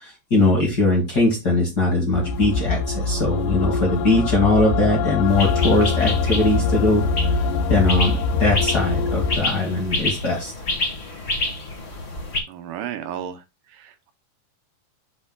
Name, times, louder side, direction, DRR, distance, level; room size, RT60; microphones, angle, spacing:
voice 1, 0.0-7.0 7.7-10.5, left 2 dB, 40° left, 1.6 m, -20 dB
sound 1, 2.1-9.4, left 5 dB, 90° left, 2.3 m, -23 dB
sound 2, 5.3-12.4, left 2 dB, 60° left, 0.6 m, -28 dB
voice 2, 12.5-13.4 13.7-14.1, right 9 dB, 80° right, 2.3 m, -33 dB
7.0 x 6.8 x 2.2 m
omnidirectional pair, 3.8 m